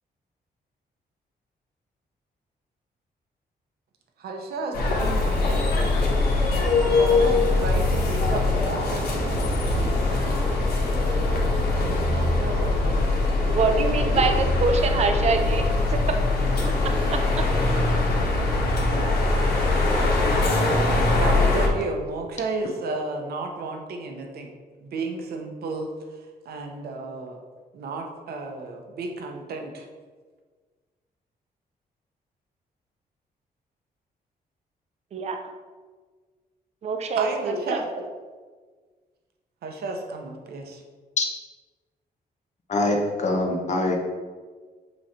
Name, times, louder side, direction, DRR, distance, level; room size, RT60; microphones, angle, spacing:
voice 1, 4.2-6.1 6.9-10.3 11.7-13.3 14.1-14.4 21.2-24.5 24.8-26.0 26.4-27.4 27.7-29.9 37.1-37.8 39.6-40.8, right 3 dB, 75° right, 3 dB, 0.9 m, -32 dB
sound 1, 4.7-21.7, left 2 dB, 85° left, 1.5 m, -22 dB
voice 2, 13.5-15.6 16.1-16.2 16.6-16.7 17.1-17.2 35.1-35.4 36.8-37.8, right 4 dB, 40° right, 5 dB, 0.5 m, -24 dB
voice 3, 42.7-44.0, left 2 dB, 45° left, 2 dB, 1.0 m, -23 dB
7.8 x 3.2 x 4.3 m, 1.5 s
wide cardioid pair, 155°, 16 cm